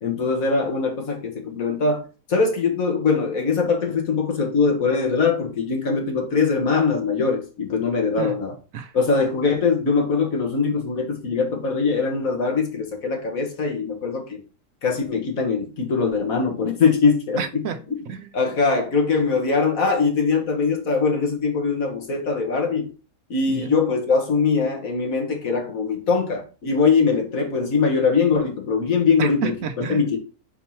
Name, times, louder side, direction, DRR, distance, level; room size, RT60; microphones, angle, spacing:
voice 1, 0.0-8.5 8.9-14.4 14.8-17.4 18.3-22.9 23.3-29.5 29.9-30.2, left 4 dB, 65° left, 1.9 m, -22 dB
voice 2, 17.4-18.3 23.5-23.8 29.2-30.1, right 7 dB, 70° right, 1.1 m, -30 dB
4.6 x 4.4 x 5.6 m
omnidirectional pair, 1.6 m